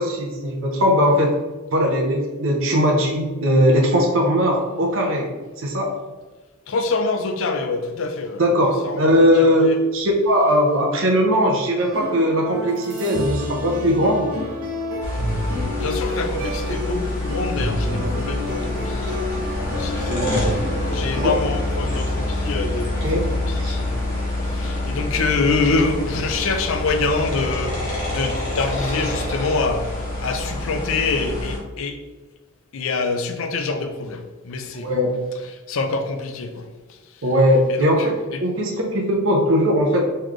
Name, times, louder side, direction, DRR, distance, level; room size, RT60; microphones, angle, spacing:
voice 1, 0.0-1.3 1.7-5.3 5.6-6.0 8.4-14.3 20.1-20.5 21.2-21.3 23.0-23.3 23.6-23.7 34.8-35.1 37.2-40.0, equal, 60° right, 0.6 m, -19 dB
voice 2, 6.7-8.4 8.8-9.1 9.4-9.7 15.8-19.0 19.6-20.2 20.9-23.2 23.5-24.1 24.4-29.9 30.2-32.0 32.7-34.9 35.7-36.5 37.7-37.9 38.3-38.4, left 3 dB, 65° left, 0.4 m, -25 dB
sound 1, 11.8-21.2, left 1 dB, 90° right, 1.2 m, -29 dB
sound 2, 15.0-31.6, left 1 dB, 35° left, 1.5 m, -27 dB
3.9 x 3.2 x 3.1 m
head